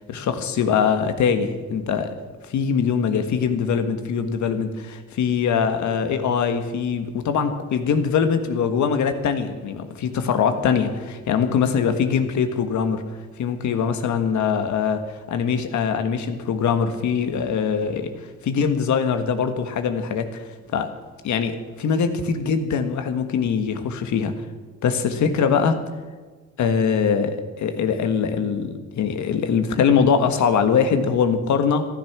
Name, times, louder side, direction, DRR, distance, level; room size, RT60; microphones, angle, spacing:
voice 1, 0.0-2.1 2.5-13.0 13.4-15.0 15.3-18.1 18.4-20.4 20.7-20.9 21.2-24.3 24.8-25.8 26.6-31.9, left 6 dB, 70° left, 8 dB, 1.6 m, -22 dB
13.5 x 12.5 x 6.1 m, 1.4 s
cardioid pair, 90°, 30 cm